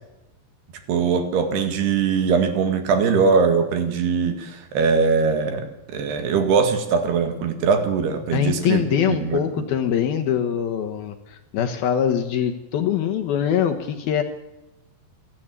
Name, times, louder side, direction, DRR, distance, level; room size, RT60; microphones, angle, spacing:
voice 1, 0.9-9.7, right 5 dB, 65° right, 7 dB, 3.8 m, -21 dB
voice 2, 8.3-14.2, left 9 dB, 70° left, 5 dB, 2.6 m, -23 dB
29.0 x 11.0 x 9.0 m, 0.97 s
omnidirectional pair, 5.2 m